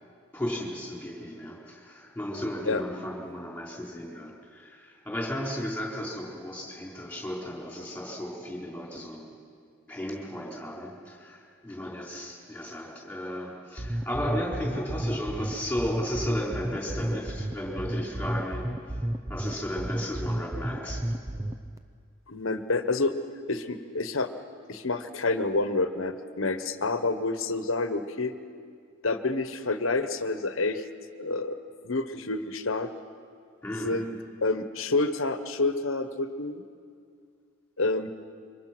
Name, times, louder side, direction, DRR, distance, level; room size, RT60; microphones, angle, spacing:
voice 1, 0.3-9.3 9.9-18.7 19.3-21.0 33.6-34.0, equal, 5° left, -3 dB, 4.4 m, -34 dB
sound 1, 13.8-21.8, right 1 dB, 15° right, 0.6 m, -32 dB
voice 2, 22.3-23.1 23.5-24.3 24.7-28.3 29.0-30.8 31.2-31.6 31.8-32.9 33.8-34.2 34.4-36.6 37.8-38.1, left 3 dB, 70° left, 10 dB, 1.2 m, -28 dB
27.0 x 24.5 x 6.1 m, 2.2 s
head